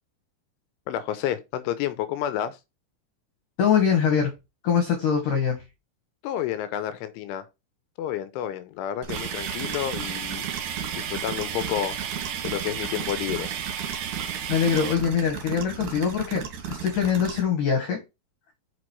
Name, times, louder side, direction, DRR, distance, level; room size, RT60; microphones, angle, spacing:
voice 1, 0.9-2.6 6.2-7.5 8.0-10.5 11.0-12.0 12.4-13.5, left 11 dB, 85° left, 3.1 m, -30 dB
voice 2, 3.6-4.3 4.6-5.6 14.5-16.4 16.7-18.0, left 7 dB, 60° left, 2.3 m, -23 dB
sound 1, 9.0-17.4, right 7 dB, 55° right, 2.6 m, -36 dB
sound 2, 9.1-15.0, right 8 dB, 75° right, 2.1 m, -33 dB
6.4 x 6.1 x 4.6 m
omnidirectional pair, 5.7 m